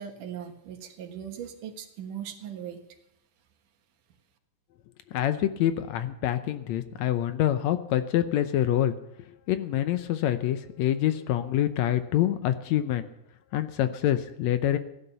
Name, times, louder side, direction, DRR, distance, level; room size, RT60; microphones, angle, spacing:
voice 1, 0.0-2.8, right 9 dB, 90° right, 5 dB, 3.0 m, -39 dB
voice 2, 5.1-8.9 9.5-13.1 13.5-14.8, left 12 dB, 75° left, 10 dB, 1.8 m, -26 dB
16.0 x 11.5 x 6.8 m, 0.83 s
omnidirectional pair, 3.6 m